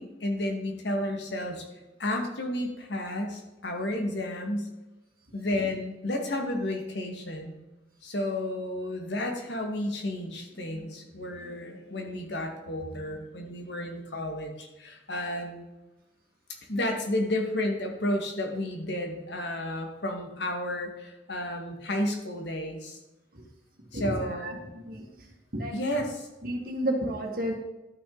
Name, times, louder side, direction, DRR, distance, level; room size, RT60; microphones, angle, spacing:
voice 1, 0.0-1.6 2.0-4.7 5.3-7.6 8.0-15.7 16.7-23.0 23.9-24.6 25.7-26.3, left 1 dB, 70° left, 3 dB, 1.8 m, -32 dB
voice 2, 23.9-24.5 24.8-25.0 25.5-26.0 26.4-27.6, right 1 dB, 50° right, 1 dB, 2.0 m, -31 dB
12.5 x 6.2 x 4.0 m, 1.0 s
head